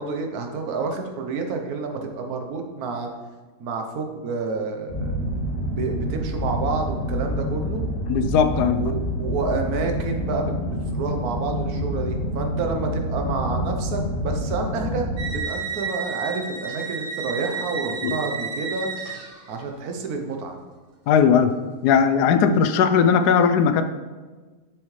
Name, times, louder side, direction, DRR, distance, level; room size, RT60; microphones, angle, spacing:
voice 1, 0.0-3.1 3.6-5.2 5.7-7.9 8.7-18.9 19.5-20.6, right 4 dB, 70° right, 4 dB, 1.3 m, -29 dB
sound 1, 4.9-15.4, equal, 60° left, 1.6 m, -27 dB
voice 2, 8.1-8.8 18.0-18.1 21.1-21.5 21.8-23.8, left 7 dB, 85° left, 10 dB, 1.1 m, -18 dB
sound 2, 15.2-19.7, right 5 dB, 85° right, 1.6 m, -31 dB
7.1 x 6.4 x 3.2 m, 1.3 s
omnidirectional pair, 1.7 m